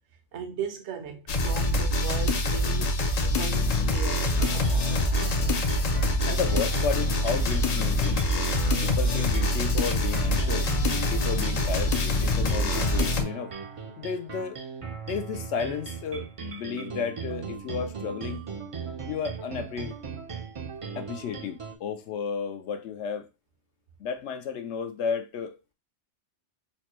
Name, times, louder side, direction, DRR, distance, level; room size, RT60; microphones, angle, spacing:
voice 1, 0.3-3.0 3.2-5.1, right 7 dB, 70° right, 1.0 m, -38 dB
sound 1, 1.3-13.2, left 1 dB, 55° left, 0.4 m, -25 dB
sound 2, 4.3-21.7, right 6 dB, 45° right, 0.4 m, -38 dB
voice 2, 6.3-8.2 8.8-13.5 14.0-14.6 15.1-18.4 19.1-19.9 21.0-23.3 24.0-25.7, left 6 dB, 75° left, 0.9 m, -33 dB
4.2 x 2.2 x 2.9 m
omnidirectional pair, 1.2 m